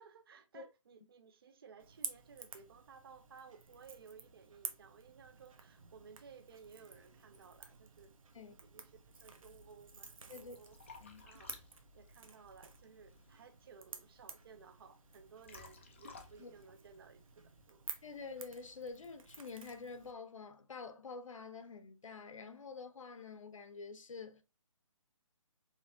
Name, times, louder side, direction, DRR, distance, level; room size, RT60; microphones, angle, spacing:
voice 1, 0.0-10.8 11.2-17.8, right 6 dB, 45° right, 0.4 m, -58 dB
Crackle / Crack, 1.8-20.1, right 4 dB, 75° right, 0.9 m, -52 dB
Liquid, 10.0-17.7, left 4 dB, 25° left, 0.4 m, -59 dB
voice 2, 10.3-10.6 11.0-11.2 16.4-16.5 18.0-24.4, left 4 dB, 70° left, 0.8 m, -48 dB
4.8 x 2.8 x 2.7 m
hypercardioid pair, 165°, 17 cm